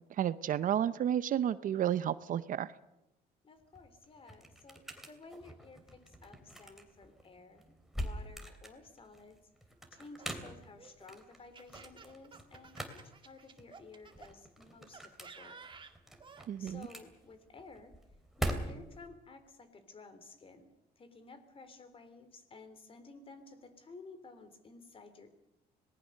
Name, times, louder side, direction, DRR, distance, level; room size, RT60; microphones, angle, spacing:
voice 1, 0.2-2.7 16.5-16.9, right 10 dB, 50° right, 15 dB, 0.8 m, -31 dB
voice 2, 3.4-9.4 9.9-15.6 16.6-17.9 18.4-20.7 21.0-25.4, left 3 dB, 35° left, 10 dB, 3.4 m, -54 dB
sound 1, 3.6-19.1, right 1 dB, ahead, 3.1 m, -44 dB
Laughter, 9.9-14.3 14.9-16.5, right 5 dB, 30° right, 1.9 m, -54 dB
25.5 x 19.0 x 6.6 m, 0.89 s
cardioid pair, 110°, 17 cm